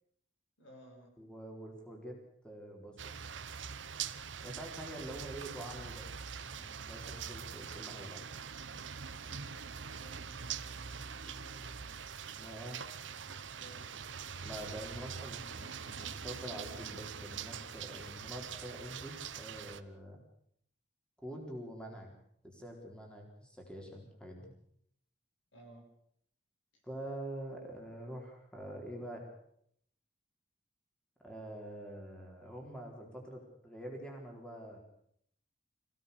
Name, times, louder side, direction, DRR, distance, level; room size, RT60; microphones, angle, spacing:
voice 1, 0.6-1.2 9.1-12.0 13.6-14.0 25.5-25.9 26.7-26.8, right 1 dB, 85° left, 2 dB, 6.9 m, -58 dB
voice 2, 1.2-2.2 2.4-3.1 4.4-6.1 6.5-8.2 12.4-12.8 14.4-20.2 21.2-22.1 22.4-24.5 26.8-29.3 31.2-34.8, right 1 dB, 5° left, 0 dB, 4.1 m, -46 dB
sound 1, 3.0-19.8, right 7 dB, 75° right, 1.0 m, -44 dB
sound 2, 13.6-18.7, equal, 40° left, 7.5 m, -66 dB
25.5 x 17.0 x 6.9 m, 0.69 s
head